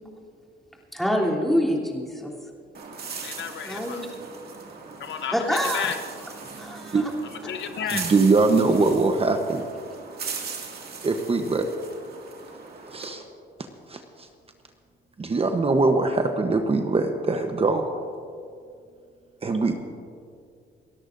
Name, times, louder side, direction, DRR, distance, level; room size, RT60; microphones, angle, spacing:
voice 1, 0.9-2.3 3.7-4.1 5.3-5.9 6.6-7.1, equal, ahead, -3 dB, 3.1 m, -26 dB
sound 1, 2.7-13.1, right 5 dB, 50° right, 2.2 m, -38 dB
voice 2, 3.2-4.1 5.0-6.0 7.4-8.0, left 9 dB, 65° left, 8 dB, 0.9 m, -32 dB
voice 3, 7.9-9.6 11.0-11.7 12.9-13.2 13.9-14.0 15.2-17.9 19.4-19.7, right 3 dB, 30° right, 5 dB, 0.9 m, -22 dB
29.0 x 13.5 x 2.6 m, 2.3 s
cardioid pair, 90°, 20 cm